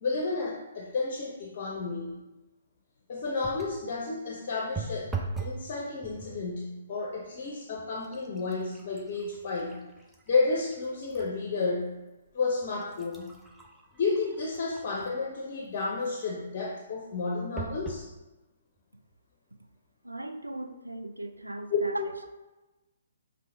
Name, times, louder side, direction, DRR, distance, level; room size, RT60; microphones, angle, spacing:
voice 1, 0.0-2.2 3.1-5.1 5.4-9.8 10.3-12.0 12.3-13.3 14.0-18.1 21.7-21.8, left 4 dB, 45° left, 0 dB, 0.5 m, -31 dB
sound 1, 3.4-3.9 4.8-5.7 6.0-6.5 7.2-7.4 7.8-11.4 11.8-11.9 12.6-15.3 17.6-18.1 18.8-18.9 19.1-19.2, right 4 dB, 5° right, 0.5 m, -40 dB
voice 2, 20.0-22.0, right 1 dB, 90° right, 6 dB, 0.5 m, -38 dB
5.4 x 2.7 x 3.3 m, 1.1 s
figure-of-eight pair, 125°, 0 cm